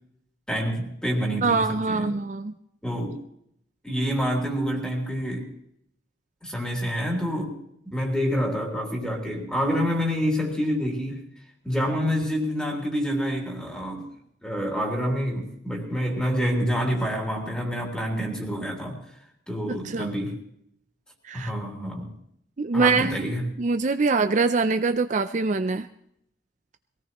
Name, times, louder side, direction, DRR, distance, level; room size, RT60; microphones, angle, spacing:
voice 1, 0.5-2.1 2.8-3.2 3.8-5.5 6.4-7.6 7.9-11.2 11.6-14.1 14.4-19.0 19.5-20.4 21.3-22.1 22.7-23.4, equal, 5° left, -1 dB, 3.1 m, -27 dB
voice 2, 1.4-2.5 19.7-20.1 21.2-21.5 22.6-25.9, right 4 dB, 45° right, 9 dB, 0.5 m, -24 dB
22.5 x 17.5 x 3.0 m, 0.74 s
head